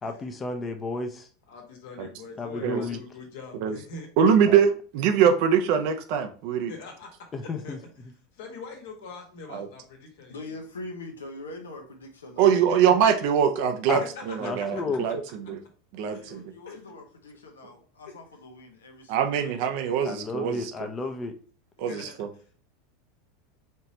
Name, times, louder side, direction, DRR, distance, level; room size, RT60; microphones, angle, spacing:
voice 1, 0.0-1.3 2.4-3.0 4.5-4.6 7.3-7.8 13.9-14.0 14.4-15.0 20.0-21.3, left 3 dB, 25° left, 0.7 m, -32 dB
voice 2, 1.5-4.1 6.7-7.1 7.4-7.8 8.3-10.6 12.7-12.8 14.0-15.0 16.1-16.8 18.1-18.2 21.9-22.1, left 4 dB, 65° left, 1.4 m, -43 dB
voice 3, 4.2-6.7 9.5-9.7 12.4-15.6 15.9-16.4 19.1-20.7 21.8-22.3, right 8 dB, 60° right, 0.7 m, -23 dB
voice 4, 10.3-12.6 16.2-19.6, left 2 dB, 85° left, 0.9 m, -43 dB
4.4 x 3.2 x 2.9 m
hypercardioid pair, 90°, 0 cm